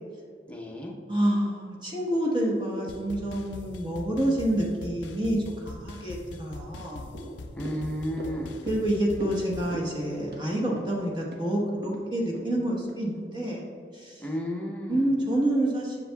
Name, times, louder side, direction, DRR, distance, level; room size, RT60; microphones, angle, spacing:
voice 1, 0.5-1.0 7.5-8.7 14.2-15.1, equal, 5° left, -2 dB, 0.7 m, -33 dB
voice 2, 1.1-7.0 8.7-13.6 13.9-14.2 14.9-16.0, right 1 dB, 25° right, -3 dB, 1.1 m, -28 dB
sound 1, 2.9-9.7, left 2 dB, 85° left, 0.4 m, -42 dB
sound 2, 7.1-13.6 14.0-14.1, equal, 70° right, 1.1 m, -42 dB
7.4 x 6.9 x 2.3 m, 2.3 s
head